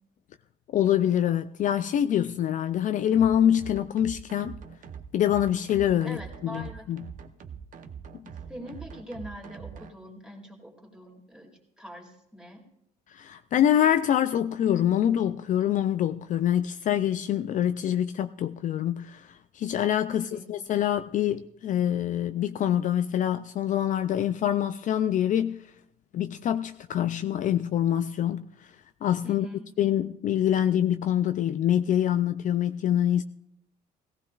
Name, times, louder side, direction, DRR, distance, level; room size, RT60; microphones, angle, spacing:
voice 1, 0.7-4.6 5.1-7.0 13.1-25.6 26.1-28.7 29.0-29.5 29.8-33.2, left 10 dB, 50° left, 0.4 m, -25 dB
sound 1, 3.1-9.9, right 7 dB, 50° right, 0.9 m, -43 dB
voice 2, 6.0-6.9 8.5-11.5 11.8-12.6 20.1-20.5 29.2-29.6, equal, 5° right, 2.5 m, -43 dB
17.5 x 15.5 x 2.4 m
cardioid pair, 110°, 17 cm